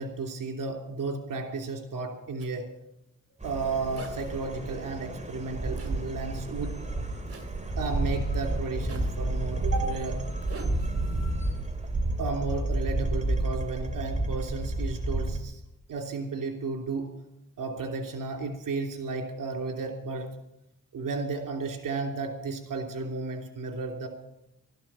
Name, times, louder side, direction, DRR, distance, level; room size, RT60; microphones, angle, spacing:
voice 1, 0.0-2.7 3.4-6.8 7.8-10.2 12.2-15.6 15.9-17.2 17.6-20.3 20.9-24.1, right 3 dB, 85° right, 4 dB, 3.1 m, -33 dB
Zipper (clothing), 2.4-2.6 4.0-4.4 5.8-6.0 7.3-7.6 8.8-9.2 10.4-11.3, right 3 dB, 45° right, 2.5 m, -45 dB
sound 1, 3.4-15.4, right 2 dB, 20° right, 2.6 m, -30 dB
13.5 x 12.0 x 7.5 m, 0.81 s
cardioid pair, 75°, 32 cm